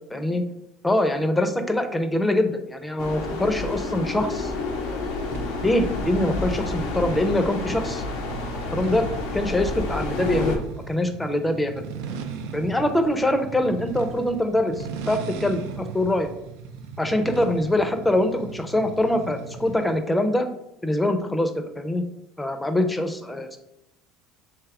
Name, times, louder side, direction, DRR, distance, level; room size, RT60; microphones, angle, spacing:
voice 1, 0.1-0.4 0.8-4.5 4.8-5.0 5.6-8.0 8.7-9.1 9.3-10.6 10.9-11.8 12.5-16.3 17.0-20.5 20.8-22.0 22.4-23.6, left 1 dB, 10° left, 7 dB, 0.6 m, -24 dB
sound 1, 3.0-10.6, left 3 dB, 80° left, 0.9 m, -29 dB
sound 2, 5.3-20.0, right 5 dB, 80° right, 0.5 m, -37 dB
3.5 x 3.1 x 4.7 m, 0.86 s
supercardioid pair, 105°, 0 cm